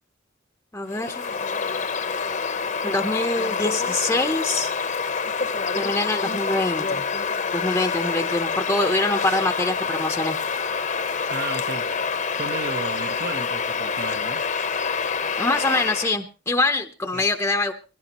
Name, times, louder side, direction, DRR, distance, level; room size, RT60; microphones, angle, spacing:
voice 1, 0.7-1.4 2.8-4.7 5.8-7.0 7.5-10.4 15.4-17.7, left 2 dB, 10° left, 0.8 m, -24 dB
Bird vocalization bird call bird song, 0.9-16.2, left 5 dB, 40° left, 0.9 m, -27 dB
voice 2, 11.3-11.9 12.4-14.5 17.1-17.3, right 3 dB, 55° right, 1.0 m, -33 dB
22.0 x 16.5 x 3.0 m
head